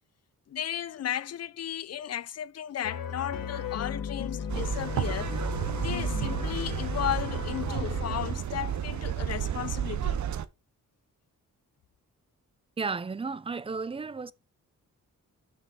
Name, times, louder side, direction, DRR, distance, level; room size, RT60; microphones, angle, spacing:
voice 1, 0.5-5.3 5.8-10.2, left 10 dB, 50° left, 0.5 m, -35 dB
sound 1, 2.8-8.3, left 7 dB, 80° left, 1.3 m, -35 dB
sound 2, 4.5-10.5, right 10 dB, 60° right, 0.6 m, -32 dB
voice 2, 12.8-14.3, right 4 dB, 15° right, 0.4 m, -33 dB
5.8 x 4.9 x 3.9 m
cardioid pair, 80°, 34 cm